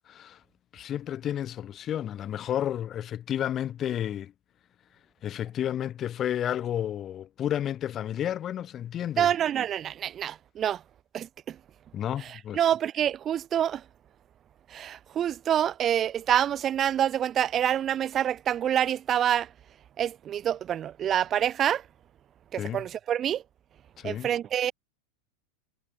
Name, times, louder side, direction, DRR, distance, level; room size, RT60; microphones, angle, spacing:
voice 1, 0.1-0.4 0.7-4.3 5.2-9.3 11.9-12.6 22.6-22.8 24.0-24.3, left 10 dB, 30° left, 1.1 m, -31 dB
voice 2, 9.2-10.8 11.1-11.6 12.2-13.8 14.7-19.5 20.0-21.8 22.5-23.4 24.0-24.7, right 10 dB, 25° right, 2.2 m, -27 dB
figure-of-eight pair, 90°, 0 cm